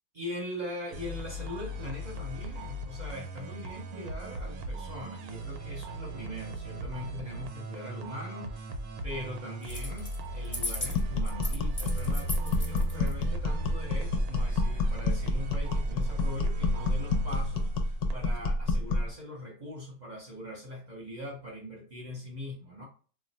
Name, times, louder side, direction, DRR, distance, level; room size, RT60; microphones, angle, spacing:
voice 1, 0.1-8.7 9.0-22.8, left 1 dB, 45° right, -1 dB, 0.6 m, -41 dB
sound 1, 0.9-18.4, right 1 dB, 85° right, 1.1 m, -38 dB
sound 2, 9.6-10.2 10.4-13.1, left 2 dB, 20° left, 0.8 m, -36 dB
sound 3, 10.9-19.1, left 2 dB, 70° left, 0.9 m, -28 dB
2.5 x 2.2 x 4.0 m, 0.38 s
omnidirectional pair, 1.5 m